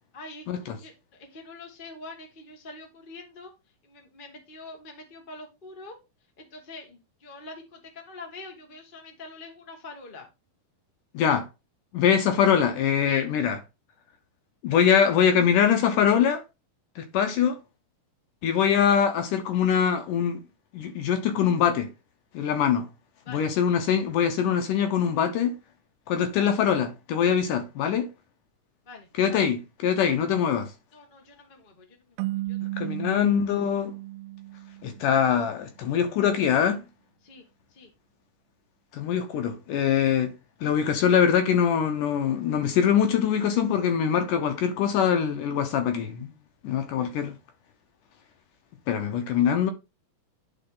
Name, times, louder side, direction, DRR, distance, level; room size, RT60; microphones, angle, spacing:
voice 1, 0.1-3.5 3.8-6.0 6.4-10.3 13.0-13.3 23.2-23.5 28.8-29.5 30.0-30.2 30.9-33.0 37.2-37.4 37.7-37.9, left 3 dB, 45° left, 0.6 m, -45 dB
voice 2, 11.1-11.5 11.9-13.6 14.6-16.4 17.0-17.6 18.4-20.4 20.7-21.9 22.3-22.9 23.3-25.5 26.1-28.1 29.2-30.7 32.8-33.9 34.8-36.8 38.9-40.3 40.6-46.3 46.6-47.3 48.9-49.7, left 8 dB, 70° left, 2.1 m, -23 dB
sound 1, 32.2-35.4, right 18 dB, 85° right, 2.4 m, -34 dB
11.0 x 4.6 x 3.8 m
omnidirectional pair, 4.4 m